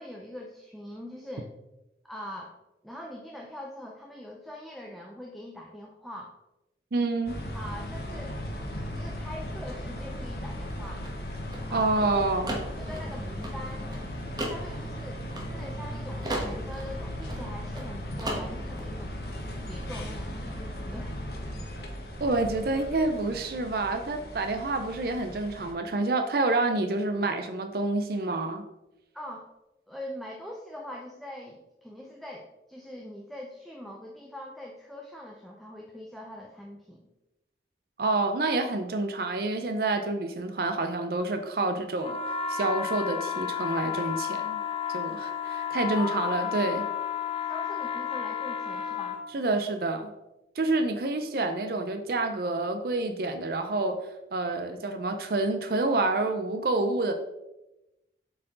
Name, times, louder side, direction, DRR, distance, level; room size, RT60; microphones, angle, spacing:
voice 1, 0.0-1.5 2.0-2.6 2.8-6.4 7.5-8.3 8.9-11.1 11.7-12.1 12.8-13.9 14.4-19.3 19.6-21.2 29.1-29.5 29.9-37.0 46.0-46.4 47.5-49.2, left 1 dB, ahead, -1 dB, 0.5 m, -42 dB
voice 2, 6.9-7.4 11.7-12.6 22.2-28.6 38.0-42.2 42.5-44.6 44.9-46.9 49.3-50.1 50.6-54.0 54.3-57.1, right 2 dB, 55° right, 7 dB, 0.5 m, -28 dB
sound 1, 7.3-25.7, equal, 60° left, 1.0 m, -37 dB
sound 2, 10.6-15.9 16.2-17.9 18.2-18.9, right 1 dB, 25° right, 1.2 m, -36 dB
sound 3, 42.0-49.2, left 8 dB, 30° left, 0.8 m, -32 dB
7.5 x 4.6 x 3.8 m, 0.95 s
head